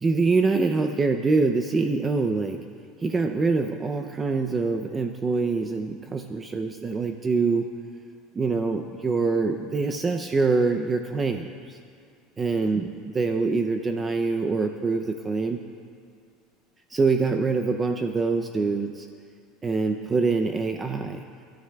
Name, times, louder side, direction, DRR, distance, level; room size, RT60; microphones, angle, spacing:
voice 1, 0.0-2.6 3.0-7.9 8.3-11.8 12.4-12.9 13.1-15.6 16.9-19.1 19.6-21.2, right 4 dB, 15° right, 5 dB, 0.5 m, -25 dB
29.0 x 13.0 x 2.3 m, 2.3 s
cardioid pair, 160°, 0 cm